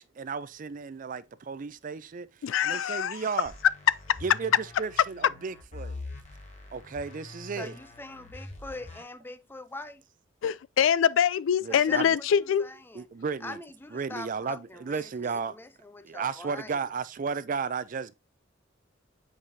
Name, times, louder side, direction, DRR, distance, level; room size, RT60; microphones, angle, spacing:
voice 1, 0.0-3.5 4.2-6.0 6.7-7.8 11.6-12.2 12.9-13.6 13.9-15.6 16.0-18.1, right 5 dB, 45° right, 0.4 m, -34 dB
voice 2, 2.4-3.1 10.4-12.7, left 8 dB, 85° left, 0.3 m, -24 dB
sound 1, 3.5-9.0, left 2 dB, 40° left, 1.3 m, -44 dB
voice 3, 7.6-10.0 11.7-13.0 13.4-16.8, left 2 dB, 10° left, 0.5 m, -43 dB
7.7 x 4.9 x 2.7 m
head